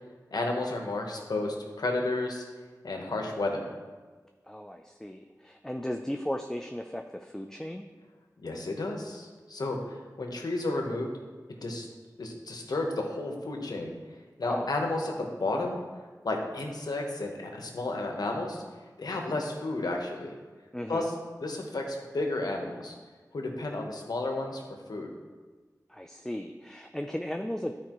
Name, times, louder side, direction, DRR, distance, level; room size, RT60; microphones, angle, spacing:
voice 1, 0.3-2.4 2.8-3.7 8.4-11.1 11.6-11.9 12.2-13.9 14.4-15.8 16.2-18.6 19.0-20.4 20.9-21.1 21.4-22.9 23.3-24.6 24.9-25.1, left 2 dB, 80° left, 2 dB, 1.0 m, -32 dB
voice 2, 4.5-7.9 14.4-14.7 20.7-21.1 25.9-27.7, left 1 dB, 5° left, 4 dB, 0.4 m, -36 dB
12.0 x 4.7 x 3.0 m, 1.4 s
wide cardioid pair, 60°, 7 cm